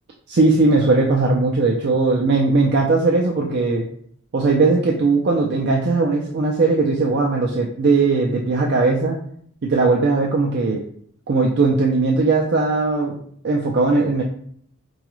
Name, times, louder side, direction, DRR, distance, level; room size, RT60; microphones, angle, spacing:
voice 1, 0.3-3.9 4.3-9.2 9.6-10.8 11.3-13.2 13.4-14.2, right 3 dB, 50° right, -1 dB, 0.4 m, -18 dB
4.8 x 2.3 x 3.0 m, 0.62 s
head